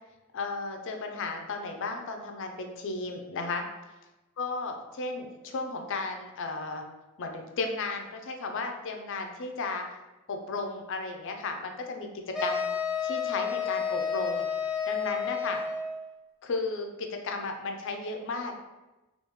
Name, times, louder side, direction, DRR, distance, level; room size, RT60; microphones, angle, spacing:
voice 1, 0.3-3.7 4.4-6.8 7.2-9.9 10.3-12.7 13.0-14.5 14.9-15.6 16.4-18.5, left 3 dB, 60° left, 3 dB, 0.5 m, -34 dB
sound 1, 12.3-16.0, left 6 dB, ahead, 0.9 m, -31 dB
3.4 x 2.4 x 3.0 m, 1.1 s
head